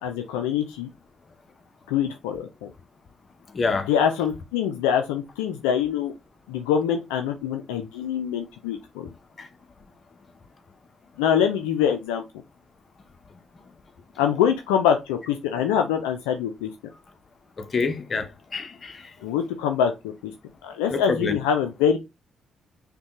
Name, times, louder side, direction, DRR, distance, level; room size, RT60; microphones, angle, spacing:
voice 1, 0.0-0.9 1.9-2.7 3.9-6.1 6.5-9.1 11.2-12.2 14.2-16.7 19.2-20.3 20.6-22.0, left 8 dB, 85° left, 0.4 m, -24 dB
voice 2, 3.5-3.9 9.4-9.5 17.6-19.1 20.9-21.4, left 4 dB, 45° left, 0.7 m, -27 dB
5.2 x 2.2 x 2.9 m
hypercardioid pair, 45°, 0 cm